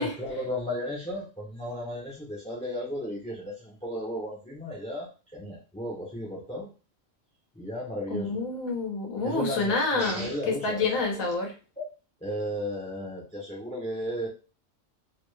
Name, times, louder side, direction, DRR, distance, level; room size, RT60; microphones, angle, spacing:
voice 1, 0.0-6.7 7.6-8.4 9.2-11.1 11.8-11.9 12.2-14.3, equal, 10° left, -3 dB, 0.5 m, -34 dB
voice 2, 8.1-11.5, left 3 dB, 80° left, 1 dB, 1.4 m, -28 dB
3.4 x 2.2 x 3.1 m, 0.34 s
omnidirectional pair, 1.4 m